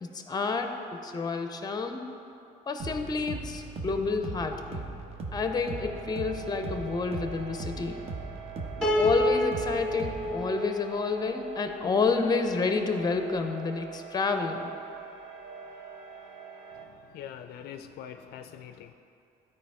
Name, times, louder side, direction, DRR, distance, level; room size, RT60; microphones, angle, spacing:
voice 1, 0.0-2.0 2.7-4.9 5.3-8.0 8.9-14.7, left 4 dB, 25° left, 6 dB, 0.6 m, -29 dB
sound 1, 2.8-10.5, right 3 dB, 35° right, 0.9 m, -39 dB
sound 2, 5.6-16.8, right 6 dB, 65° right, 1.3 m, -44 dB
Piano, 8.8-12.0, equal, 5° left, 1.3 m, -30 dB
voice 2, 17.1-18.9, left 9 dB, 70° left, 8 dB, 0.4 m, -43 dB
12.5 x 4.7 x 3.5 m, 2.7 s
cardioid pair, 110°, 17 cm